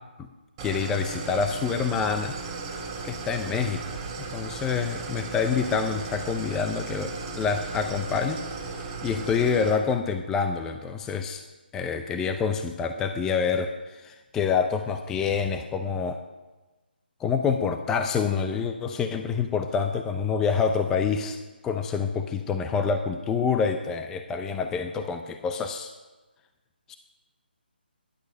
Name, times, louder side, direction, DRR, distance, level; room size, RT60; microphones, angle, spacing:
voice 1, 0.6-2.3 3.0-4.0 4.3-11.4 11.7-16.2 17.2-21.4 21.6-25.9 26.9-27.0, left 6 dB, 10° left, 7 dB, 0.6 m, -27 dB
Idling, 0.6-9.7, right 4 dB, 20° right, 3.0 m, -36 dB
18.5 x 11.0 x 5.4 m, 1.2 s
figure-of-eight pair, 155°, 6 cm